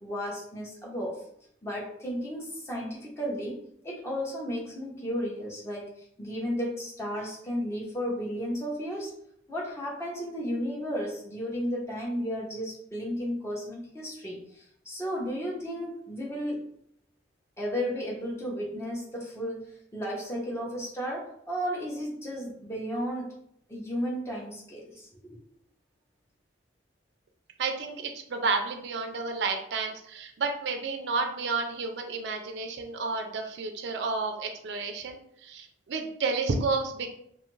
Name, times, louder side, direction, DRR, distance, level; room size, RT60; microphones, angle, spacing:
voice 1, 0.0-1.2 1.6-9.2 9.5-16.7 17.6-23.4 23.7-25.4, equal, 15° left, -4 dB, 0.7 m, -34 dB
voice 2, 27.6-37.1, right 4 dB, 65° right, 4 dB, 0.4 m, -31 dB
2.5 x 2.4 x 3.0 m, 0.71 s
head